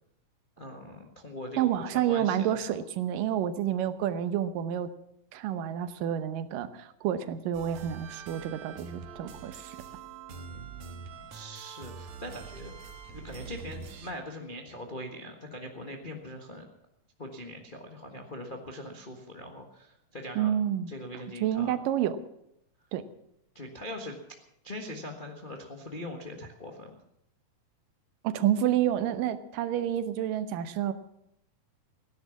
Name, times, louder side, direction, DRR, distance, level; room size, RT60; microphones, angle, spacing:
voice 1, 0.6-2.8 10.3-12.7 13.1-16.6 17.2-20.5 20.9-21.8 23.5-24.2 24.6-26.9, left 1 dB, 80° left, 2 dB, 0.4 m, -42 dB
voice 2, 1.6-4.9 5.3-9.8 20.4-20.9 21.4-22.2 22.9-23.0 28.2-30.9, right 10 dB, 85° right, 12 dB, 2.6 m, -29 dB
sound 1, 7.5-14.1, right 6 dB, 65° right, 2.4 m, -44 dB
17.0 x 10.5 x 7.1 m, 0.78 s
omnidirectional pair, 3.8 m